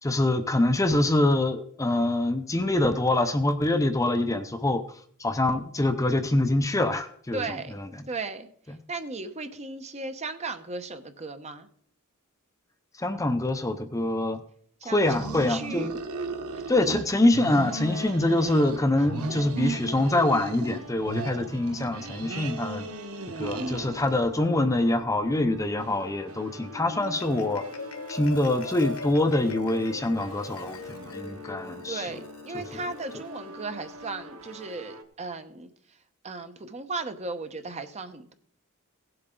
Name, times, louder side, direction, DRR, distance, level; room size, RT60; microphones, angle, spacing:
voice 1, 0.0-4.8 5.2-7.9 13.0-14.4 14.8-16.0 16.7-22.9 23.4-27.6 28.1-32.2 32.5-32.6, left 1 dB, 15° left, 8 dB, 0.6 m, -25 dB
voice 2, 7.3-7.8 8.1-8.5 8.9-11.7 14.8-15.9 16.5-16.6 19.6-19.8 23.5-24.0 31.9-35.7 36.2-38.3, right 3 dB, 30° right, 9 dB, 0.9 m, -36 dB
sound 1, 15.0-17.0 17.3-18.8 19.1-20.8 21.1-24.3, right 3 dB, 90° right, 1.0 m, -35 dB
sound 2, 17.3-35.0, left 1 dB, 70° right, 1.3 m, -45 dB
Marimba xylophone, 26.6-33.2, left 3 dB, 80° left, 1.1 m, -39 dB
17.0 x 7.9 x 3.8 m, 0.62 s
head